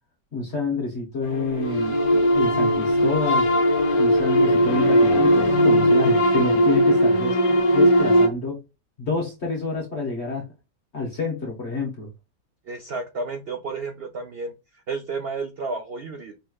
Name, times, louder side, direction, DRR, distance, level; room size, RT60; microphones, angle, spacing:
voice 1, 0.3-3.5 4.0-8.6 9.0-10.5 10.9-12.1, left 3 dB, 45° left, 1.3 m, -28 dB
sound 1, 1.2-8.3, equal, 60° left, 1.3 m, -19 dB
voice 2, 12.7-14.5 14.9-16.3, right 3 dB, 85° right, 0.5 m, -31 dB
5.3 x 3.1 x 2.3 m
omnidirectional pair, 1.9 m